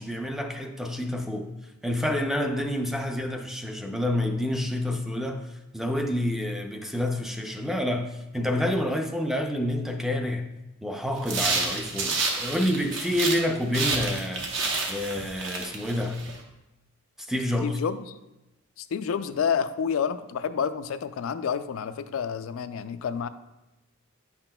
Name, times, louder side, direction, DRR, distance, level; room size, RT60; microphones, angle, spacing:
voice 1, 0.0-1.5 1.8-10.5 10.8-14.5 14.9-16.2 17.2-17.8, left 1 dB, ahead, 0.3 m, -28 dB
sound 1, 11.2-13.4 13.7-16.3, right 3 dB, 65° right, 0.9 m, -29 dB
voice 2, 17.6-18.0 18.8-23.3, left 7 dB, 75° left, 0.3 m, -29 dB
9.5 x 5.8 x 2.2 m
head